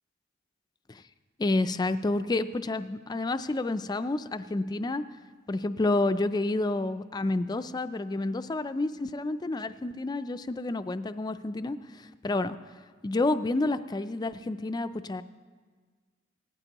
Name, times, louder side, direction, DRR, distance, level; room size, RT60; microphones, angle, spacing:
voice 1, 1.4-5.0 5.5-12.6 13.0-15.2, left 2 dB, 20° left, 12 dB, 0.3 m, -29 dB
18.0 x 13.5 x 3.0 m, 1.5 s
head